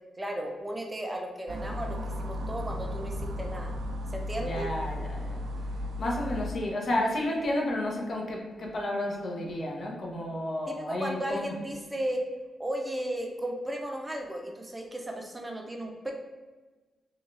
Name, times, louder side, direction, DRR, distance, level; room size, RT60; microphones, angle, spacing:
voice 1, 0.2-3.7 4.1-4.7 6.0-6.1 10.7-12.2 12.6-16.1, right 1 dB, 20° right, 2 dB, 0.5 m, -35 dB
sound 1, 1.5-6.5, left 1 dB, 75° right, 0.3 m, -35 dB
voice 2, 4.4-5.4 6.0-11.6, left 1 dB, 60° left, -1 dB, 0.8 m, -31 dB
3.5 x 2.3 x 3.2 m, 1.2 s
cardioid pair, 65°, 0 cm